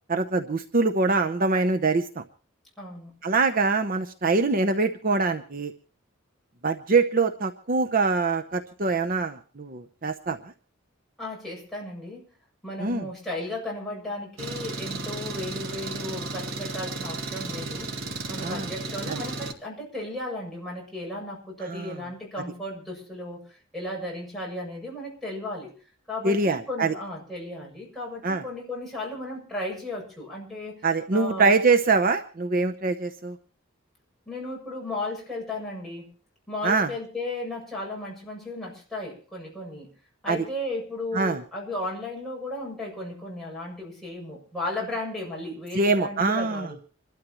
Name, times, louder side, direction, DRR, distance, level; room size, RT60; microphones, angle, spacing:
voice 1, 0.1-2.2 3.2-5.7 6.6-10.4 12.8-13.1 18.4-18.7 19.1-19.2 21.6-22.0 26.2-26.9 28.2-28.4 30.8-33.4 36.6-36.9 40.3-40.4 41.1-41.4 45.7-46.8, right 3 dB, 45° right, 7 dB, 0.8 m, -24 dB
voice 2, 2.8-3.1 11.2-12.3 12.6-17.9 18.3-23.4 23.7-25.7 26.1-30.8 31.1-31.5 34.3-36.1 36.5-39.9 40.2-46.8, left 1 dB, ahead, -4 dB, 7.2 m, -35 dB
Engine, 14.4-19.5, right 2 dB, 85° right, 2.3 m, -34 dB
27.0 x 12.5 x 3.1 m, 0.38 s
head